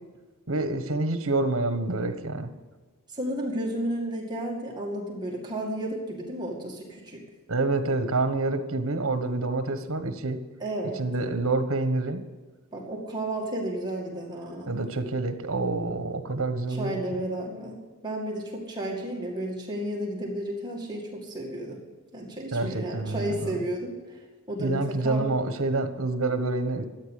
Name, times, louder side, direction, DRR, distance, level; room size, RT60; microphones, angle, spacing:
voice 1, 0.5-2.5 7.5-10.4 11.0-12.2 14.7-17.0 22.5-23.6 24.6-26.8, right 2 dB, 75° right, 9 dB, 1.3 m, -27 dB
voice 2, 3.1-7.2 10.6-11.0 12.7-14.8 16.7-21.8 22.1-24.2 24.5-25.3, right 1 dB, 20° right, -2 dB, 2.1 m, -32 dB
13.5 x 9.2 x 6.5 m, 1.4 s
head